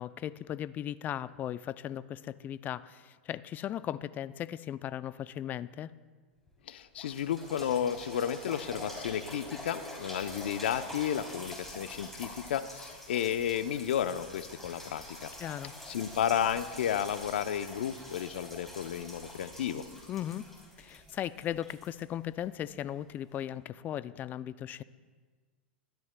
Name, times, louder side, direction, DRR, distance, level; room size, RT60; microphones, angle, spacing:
voice 1, 0.0-6.0 15.4-15.7 20.1-20.5 20.8-24.8, left 11 dB, 30° left, 17 dB, 0.4 m, -37 dB
sound 1, 6.5-6.6 7.0-22.7 23.3-23.4, left 1 dB, 5° left, 3.3 m, -46 dB
voice 2, 6.7-15.3 15.9-19.9, left 9 dB, 70° left, 13 dB, 0.6 m, -32 dB
21.0 x 13.0 x 2.2 m, 1.5 s
hypercardioid pair, 105°, 6 cm